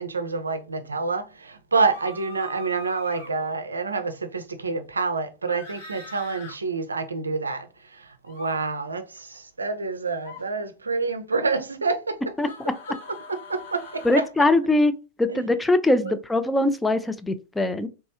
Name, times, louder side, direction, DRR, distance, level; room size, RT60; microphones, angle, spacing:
voice 1, 0.0-7.7 7.9-12.3 13.3-14.3 15.3-15.5 16.0-16.2, right 4 dB, 75° right, 0.5 m, -28 dB
sound 1, 1.8-3.3 5.5-6.5 8.2-8.5 10.1-10.4 12.4-14.3 16.0-16.1, left 2 dB, 70° left, 1.8 m, -42 dB
voice 2, 12.4-12.7 14.0-14.9 15.2-17.9, left 2 dB, 10° left, 0.4 m, -22 dB
3.4 x 3.1 x 2.8 m
figure-of-eight pair, 90°, 0 cm